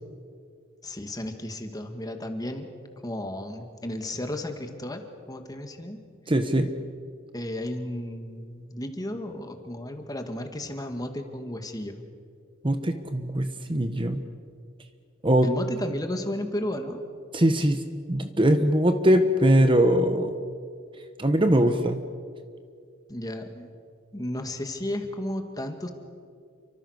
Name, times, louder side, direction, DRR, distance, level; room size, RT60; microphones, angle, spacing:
voice 1, 0.8-2.7 3.0-5.0 5.3-6.0 7.3-12.0 15.4-17.0 23.1-23.7 24.1-25.9, left 1 dB, 20° left, 5 dB, 2.1 m, -33 dB
voice 2, 6.3-6.7 12.6-14.2 15.2-15.5 17.3-17.8 18.1-20.3 21.2-22.0, right 1 dB, 25° right, 8 dB, 1.2 m, -21 dB
29.5 x 24.5 x 6.6 m, 2.2 s
head